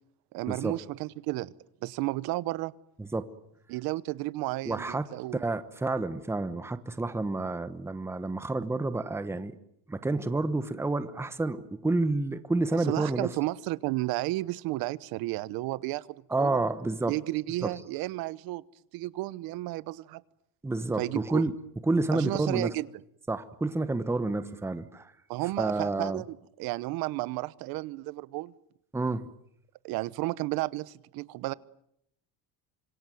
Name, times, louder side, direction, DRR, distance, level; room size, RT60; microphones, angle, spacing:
voice 1, 0.3-1.5 1.8-2.7 3.7-5.4 12.7-16.1 16.4-16.6 17.1-18.6 18.9-20.2 21.0-21.4 22.1-22.9 25.3-28.5 29.8-31.5, right 18 dB, 80° right, 19 dB, 1.0 m, -32 dB
voice 2, 4.7-9.5 9.9-13.3 16.3-17.1 17.6-17.7 20.6-21.5 21.9-22.7 23.3-25.1 25.6-26.2 28.9-29.3, right 2 dB, 5° right, 12 dB, 1.1 m, -29 dB
26.0 x 23.0 x 9.3 m, 0.74 s
cardioid pair, 165°, 35 cm